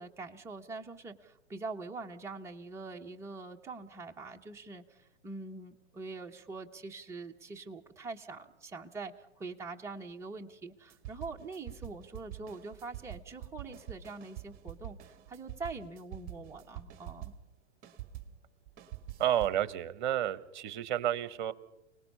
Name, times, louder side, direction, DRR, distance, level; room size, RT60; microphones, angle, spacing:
voice 1, 0.0-17.3, right 3 dB, 5° right, 1 dB, 1.1 m, -44 dB
sound 1, 10.9-17.5 17.8-19.7, right 12 dB, 25° right, 1.7 m, -46 dB
voice 2, 19.2-21.5, right 11 dB, 40° right, 17 dB, 1.2 m, -31 dB
29.5 x 19.0 x 5.6 m, 0.83 s
figure-of-eight pair, 120°, 35 cm